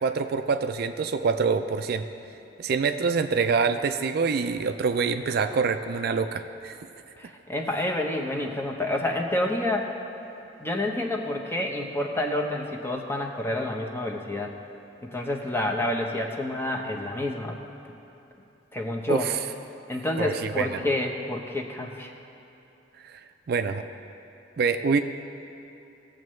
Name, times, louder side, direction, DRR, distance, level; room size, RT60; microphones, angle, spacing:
voice 1, 0.0-2.1 2.6-6.8 19.1-19.4 20.2-20.8 23.0-23.2 23.5-23.9 24.6-25.0, right 5 dB, 55° right, 8 dB, 0.4 m, -25 dB
voice 2, 7.2-9.9 10.6-14.5 15.0-17.6 18.7-19.3 19.9-22.1, left 1 dB, 15° left, 1 dB, 0.8 m, -28 dB
17.5 x 7.6 x 3.2 m, 2.9 s
head